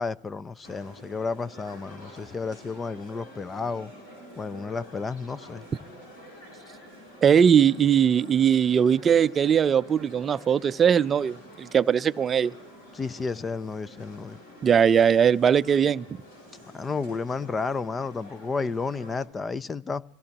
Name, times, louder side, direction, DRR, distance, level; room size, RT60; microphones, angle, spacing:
voice 1, 0.0-3.9 4.4-5.6 12.9-14.4 16.7-20.0, left 4 dB, 20° left, 0.5 m, -32 dB
sound 1, 0.6-19.3, equal, 85° left, 7.5 m, -48 dB
voice 2, 7.2-12.5 14.6-16.0, right 8 dB, 30° right, 0.5 m, -20 dB
24.5 x 17.0 x 2.9 m
supercardioid pair, 105°, 0 cm